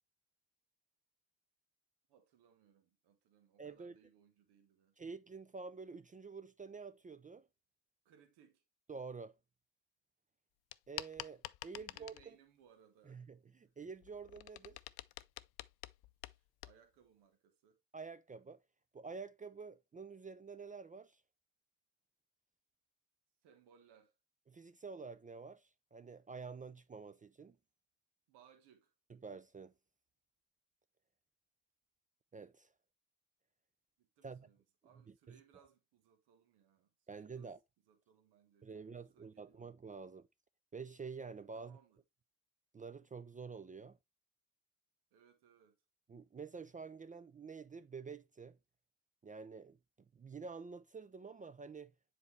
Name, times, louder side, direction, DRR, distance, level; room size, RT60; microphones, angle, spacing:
voice 1, 2.1-4.9 8.0-8.6 11.7-13.2 14.6-14.8 16.3-17.8 23.4-24.1 28.3-28.9 34.0-37.5 37.9-38.9 39.1-39.7 41.5-42.0 45.1-45.8, right 8 dB, 90° right, 1.3 m, -67 dB
voice 2, 3.6-4.0 5.0-7.5 8.9-9.4 10.9-12.4 13.1-14.8 17.9-18.6 18.9-21.2 24.5-27.6 29.1-29.7 32.3-32.7 34.2-34.5 35.3-35.4 37.1-37.6 38.6-40.3 40.7-41.8 42.7-44.0 46.1-48.6 49.2-49.8 50.1-51.9, right 5 dB, 20° right, 0.4 m, -48 dB
sound 1, 10.7-12.3 13.8-16.8, left 17 dB, 70° left, 0.5 m, -48 dB
7.3 x 4.2 x 3.1 m
cardioid pair, 80°, 38 cm